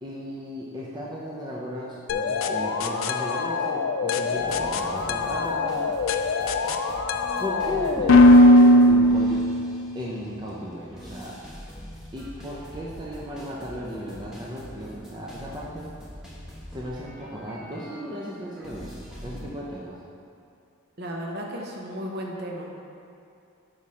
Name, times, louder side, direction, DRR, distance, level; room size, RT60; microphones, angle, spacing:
voice 1, 0.0-5.9 7.4-9.4 9.9-11.3 12.1-15.9 16.7-20.0, equal, 20° right, -5 dB, 0.5 m, -35 dB
sound 1, 2.1-9.9, left 1 dB, 70° left, 0.4 m, -20 dB
sound 2, 4.3-19.4, equal, 5° right, 0.9 m, -44 dB
voice 2, 21.0-22.7, equal, 50° right, -1 dB, 0.8 m, -34 dB
5.8 x 4.9 x 4.2 m, 2.5 s
head